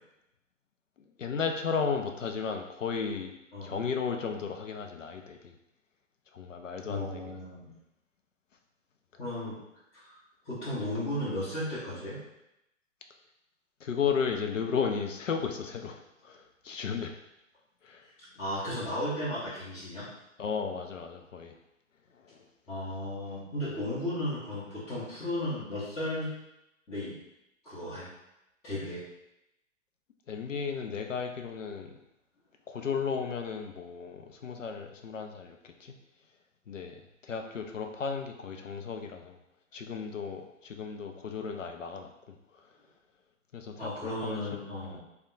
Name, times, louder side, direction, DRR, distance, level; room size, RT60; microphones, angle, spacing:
voice 1, 1.0-3.3 3.6-5.6 6.3-7.4 13.8-17.2 17.8-18.1 20.4-21.6 22.1-22.5 30.3-31.9 32.7-35.9 36.7-39.4 39.7-42.7 43.5-44.5 44.8-45.0, left 6 dB, 75° left, 4 dB, 0.5 m, -34 dB
voice 2, 6.8-7.7 9.2-9.6 9.9-10.1 10.4-12.2 18.4-20.1 22.7-26.3 26.9-27.2 27.6-28.1 28.6-29.0 43.8-45.0, left 1 dB, 10° left, -13 dB, 0.6 m, -35 dB
3.4 x 2.3 x 3.7 m, 0.87 s
figure-of-eight pair, 120°, 38 cm